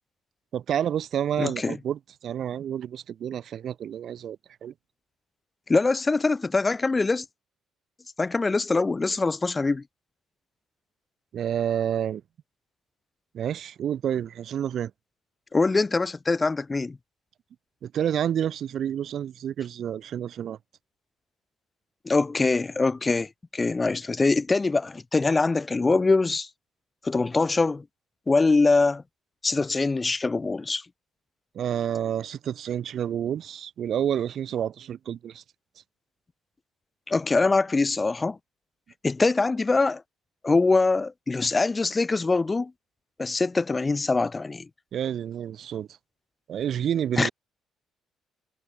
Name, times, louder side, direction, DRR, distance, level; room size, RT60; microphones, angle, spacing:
voice 1, 0.5-4.7 11.3-12.2 13.3-14.9 17.8-20.6 31.5-35.4 44.9-45.9 46.5-47.3, right 9 dB, 50° right, 2.6 m, -29 dB
voice 2, 1.4-1.7 5.7-7.2 8.2-9.8 15.5-17.0 22.0-26.5 27.0-27.8 28.3-29.0 29.4-30.8 37.1-38.4 39.0-40.0 40.4-42.7 43.2-44.7 47.2-47.3, left 3 dB, 20° left, 1.3 m, -23 dB
cardioid pair, 145°, 0 cm